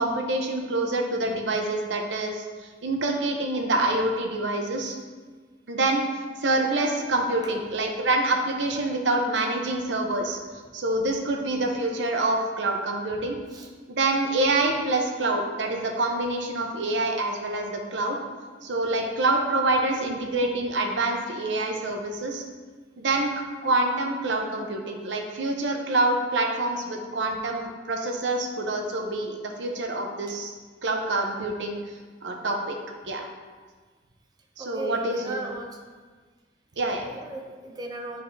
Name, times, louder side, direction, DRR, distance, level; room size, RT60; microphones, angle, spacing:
voice 1, 0.0-2.4 2.8-5.0 5.7-6.0 6.4-10.4 10.7-13.4 13.9-18.2 18.6-22.4 23.0-30.5 30.8-31.8 32.2-32.7 33.1-33.3 34.6-35.4 36.8-37.0, right 2 dB, 85° right, 2 dB, 0.8 m, -26 dB
voice 2, 34.6-35.8 36.9-38.2, right 2 dB, 20° right, 0 dB, 0.5 m, -36 dB
9.4 x 4.1 x 2.7 m, 1.4 s
head